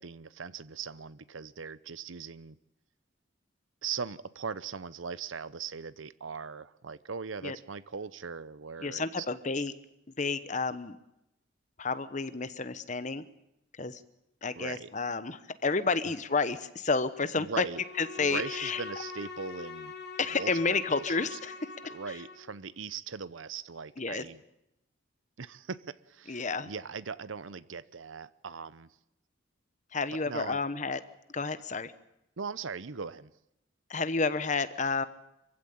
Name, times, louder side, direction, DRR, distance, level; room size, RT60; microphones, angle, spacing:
voice 1, 0.0-2.6 3.8-9.3 14.6-14.9 17.4-17.8 18.2-19.9 20.3-21.4 21.9-24.4 25.4-29.0 30.1-30.6 32.4-33.3, right 5 dB, 80° right, 18 dB, 0.8 m, -40 dB
voice 2, 8.8-9.7 10.2-11.0 11.8-13.2 13.8-14.0 14.4-17.6 18.0-18.8 20.2-21.6 24.0-24.2 26.3-26.7 29.9-31.0 31.3-31.9 33.9-35.0, left 4 dB, 40° left, 13 dB, 1.0 m, -30 dB
Bowed string instrument, 17.7-22.5, left 4 dB, 55° left, 3.6 m, -43 dB
25.0 x 15.5 x 8.6 m, 0.86 s
head